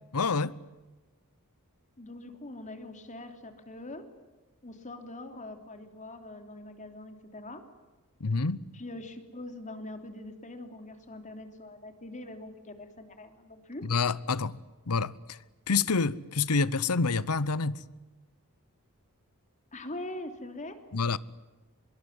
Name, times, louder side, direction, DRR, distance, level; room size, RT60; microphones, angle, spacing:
voice 1, 0.1-0.6 8.2-8.6 13.8-14.6 14.9-15.4 15.7-17.8 20.9-21.2, left 4 dB, 80° left, 0.9 m, -27 dB
voice 2, 2.0-4.0 4.6-7.6 8.7-13.8 19.7-20.8, left 1 dB, 35° left, 3.1 m, -43 dB
25.0 x 22.5 x 9.7 m
head